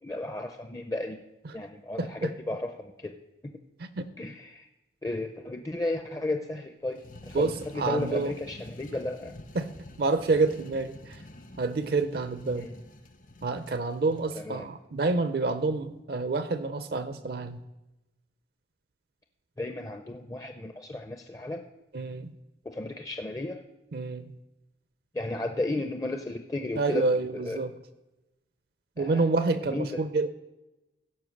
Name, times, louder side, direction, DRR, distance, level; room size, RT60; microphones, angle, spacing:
voice 1, 0.0-1.2 1.5-3.1 3.4-3.5 4.2-4.7 5.0-9.3 12.6-12.7 14.4-14.7 19.6-21.6 22.6-23.6 25.1-27.0 27.3-27.6 29.0-29.2 29.7-29.9, left 2 dB, 20° left, 5 dB, 0.5 m, -34 dB
voice 2, 2.0-2.3 3.8-4.0 7.3-8.3 9.5-9.7 10.0-11.2 11.6-12.7 13.4-17.6 21.9-22.3 23.9-24.3 26.8-27.7 29.0-30.3, right 3 dB, 55° right, 11 dB, 0.5 m, -28 dB
sound 1, 6.9-14.3, left 1 dB, 50° left, 0.8 m, -48 dB
15.5 x 5.4 x 6.4 m, 1.0 s
head